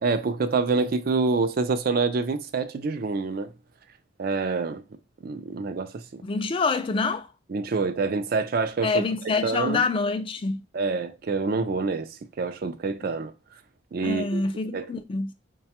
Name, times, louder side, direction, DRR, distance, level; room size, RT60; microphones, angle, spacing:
voice 1, 0.0-3.5 4.2-4.8 5.2-6.2 7.5-9.0 9.4-9.8 10.7-13.3 13.9-14.4 14.7-14.8, right 4 dB, 50° right, 0.4 m, -26 dB
voice 2, 6.2-7.3 8.8-10.6 14.0-15.3, left 4 dB, 30° left, 0.3 m, -26 dB
3.9 x 2.2 x 2.8 m
head